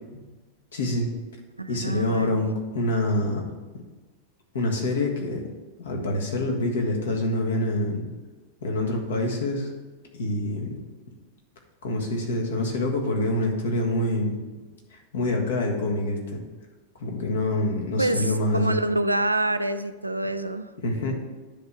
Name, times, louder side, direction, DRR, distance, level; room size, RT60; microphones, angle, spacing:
voice 1, 0.7-1.1 1.7-3.4 4.5-5.4 5.8-8.1 8.6-9.7 10.1-10.8 11.8-14.4 14.9-16.4 17.0-18.8 20.8-21.2, left 1 dB, 65° left, 1 dB, 1.5 m, -26 dB
voice 2, 1.6-2.5 18.0-20.7, right 1 dB, 85° right, 10 dB, 0.4 m, -26 dB
10.5 x 3.5 x 5.6 m, 1.3 s
figure-of-eight pair, 90°, 0 cm